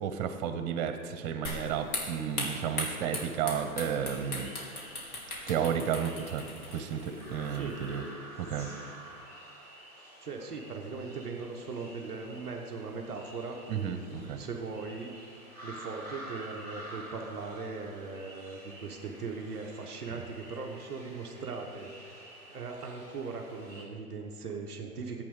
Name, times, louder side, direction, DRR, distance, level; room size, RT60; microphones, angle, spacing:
voice 1, 0.0-4.5 5.5-6.5 6.7-8.1 8.4-8.7 13.7-14.4, right 8 dB, 30° right, 9 dB, 0.8 m, -32 dB
sound 1, 1.5-8.0, left 1 dB, 75° left, 3.1 m, -39 dB
sound 2, 4.0-23.9, right 1 dB, 20° left, 2.7 m, -49 dB
voice 2, 7.5-7.8 10.2-13.6 14.2-15.1 15.6-25.2, right 4 dB, 10° right, -10 dB, 0.3 m, -39 dB
10.5 x 8.3 x 6.6 m, 2.3 s
hypercardioid pair, 130°, 44 cm